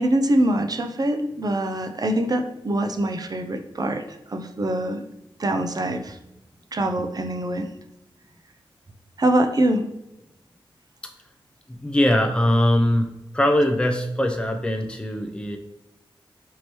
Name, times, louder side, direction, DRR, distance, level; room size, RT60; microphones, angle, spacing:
voice 1, 0.0-5.0 5.4-6.2 6.7-7.7 9.2-9.8, right 1 dB, 45° right, 6 dB, 0.5 m, -24 dB
voice 2, 11.7-13.1 13.3-15.6, left 1 dB, 10° left, 4 dB, 0.4 m, -21 dB
4.5 x 2.9 x 3.0 m, 0.90 s
cardioid pair, 50°, 9 cm